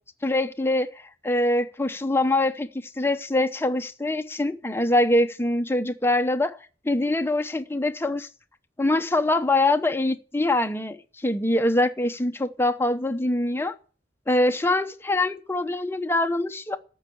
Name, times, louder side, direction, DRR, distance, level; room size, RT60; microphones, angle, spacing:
voice 1, 0.2-0.9 1.2-2.7 3.0-6.6 6.8-8.3 8.8-11.0 11.2-13.7 14.3-16.8, left 1 dB, 15° left, 0.8 m, -23 dB
14.0 x 5.5 x 8.6 m
head